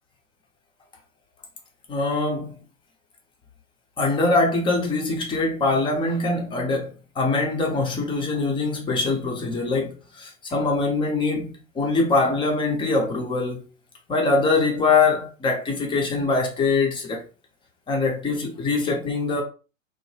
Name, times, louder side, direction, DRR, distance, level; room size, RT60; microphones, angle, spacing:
voice 1, 1.9-2.6 4.0-13.6 14.1-17.3 17.9-19.4, left 3 dB, 10° left, 0.5 m, -23 dB
2.8 x 2.0 x 3.2 m
figure-of-eight pair, 100°, 41 cm